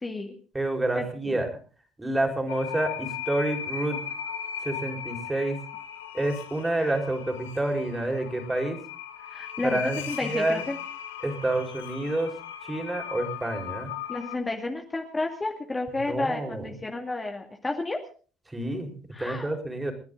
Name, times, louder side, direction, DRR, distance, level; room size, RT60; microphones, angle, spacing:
voice 1, 0.0-0.3 1.0-1.1 9.3-9.8 10.1-10.8 14.1-18.0 19.1-19.5, left 2 dB, 20° left, 2 dB, 2.4 m, -31 dB
voice 2, 0.5-1.5 2.0-4.0 4.6-5.6 6.1-8.8 9.6-10.6 11.2-12.3 12.6-13.9 15.9-16.7 18.5-18.9 19.2-19.9, right 1 dB, 15° right, 5 dB, 4.8 m, -28 dB
sound 1, 2.5-14.4, left 9 dB, 85° left, 1.3 m, -37 dB
29.5 x 10.5 x 3.9 m, 0.39 s
hypercardioid pair, 70°, 0 cm